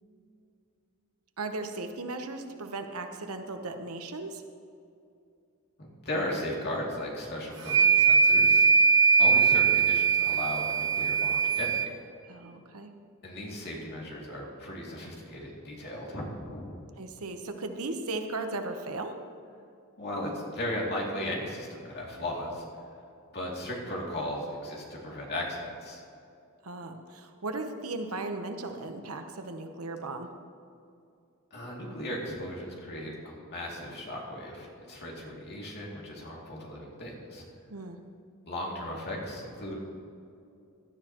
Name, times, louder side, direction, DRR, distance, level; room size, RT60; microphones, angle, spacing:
voice 1, 1.4-4.4 12.3-12.9 17.0-19.2 26.6-30.3 37.7-38.0, right 2 dB, 75° right, 6 dB, 1.0 m, -36 dB
voice 2, 5.8-8.7 9.2-12.0 13.2-16.7 20.0-22.6 23.3-26.0 31.5-37.4 38.5-39.8, left 1 dB, 50° left, -3 dB, 2.6 m, -36 dB
sound 1, 7.6-11.9, right 5 dB, 55° right, 1.3 m, -21 dB
17.0 x 12.0 x 3.0 m, 2.5 s
head